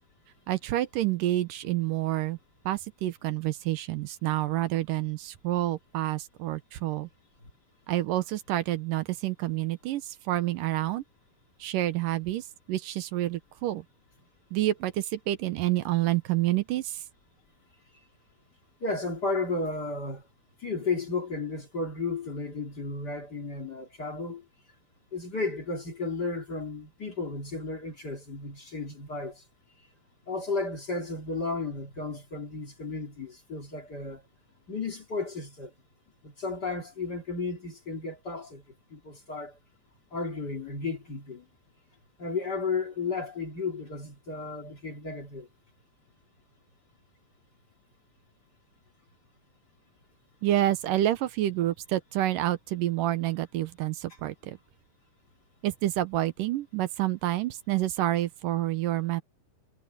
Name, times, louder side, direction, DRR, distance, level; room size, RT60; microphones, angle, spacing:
voice 1, 0.5-2.4 2.7-7.1 7.9-11.0 11.6-13.8 14.5-17.0 50.4-54.6 55.6-59.2, right 14 dB, 80° right, 2.5 m, -28 dB
voice 2, 18.8-20.2 20.6-24.4 25.1-29.4 30.3-34.2 34.7-35.7 36.2-38.6 38.9-39.6 40.1-41.5 42.2-45.5, left 3 dB, 30° left, 2.5 m, -33 dB
omnidirectional pair, 4.0 m